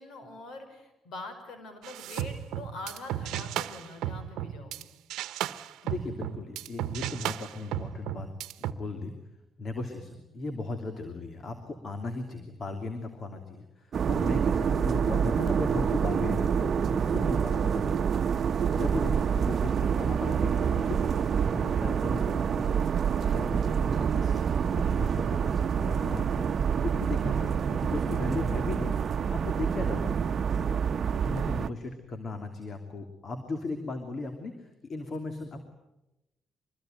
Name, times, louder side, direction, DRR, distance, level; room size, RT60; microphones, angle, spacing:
voice 1, 0.0-4.9 14.2-14.4 23.2-23.4, left 2 dB, 75° left, 8 dB, 5.3 m, -44 dB
sound 1, 1.8-4.8 5.1-8.7, right 12 dB, 90° right, 0.9 m, -34 dB
voice 2, 5.8-8.3 8.6-9.1 9.6-18.1 18.7-21.0 21.5-22.7 23.3-29.0 29.3-30.8 31.2-35.7, left 2 dB, 45° left, 6 dB, 2.9 m, -37 dB
sound 2, 13.9-31.7, right 7 dB, 50° right, 0.9 m, -27 dB
24.5 x 21.5 x 9.2 m, 0.95 s
cardioid pair, 90°, 0 cm